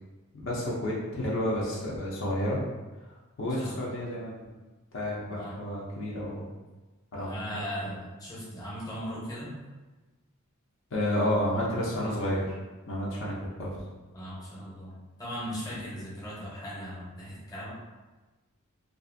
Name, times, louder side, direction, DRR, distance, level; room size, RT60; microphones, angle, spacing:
voice 1, 0.4-2.6 3.4-4.3 4.9-6.5 7.1-7.6 10.9-12.4 12.9-13.7 15.7-15.8, left 1 dB, 60° left, -5 dB, 0.5 m, -30 dB
voice 2, 3.5-3.8 5.3-5.6 7.2-9.5 14.1-17.7, equal, 15° left, -7 dB, 0.7 m, -38 dB
2.5 x 2.4 x 2.5 m, 1.2 s
head